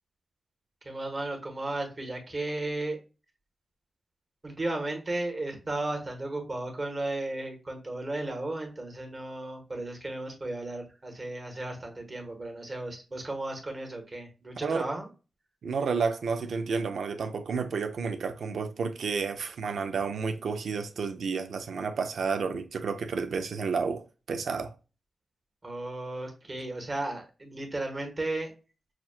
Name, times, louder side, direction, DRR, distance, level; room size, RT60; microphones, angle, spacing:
voice 1, 0.8-3.0 4.4-15.1 25.6-28.5, right 2 dB, 35° right, 1.4 m, -34 dB
voice 2, 15.6-24.7, right 5 dB, 80° right, 0.5 m, -31 dB
5.9 x 2.3 x 2.4 m
wide cardioid pair, 95°, 0 cm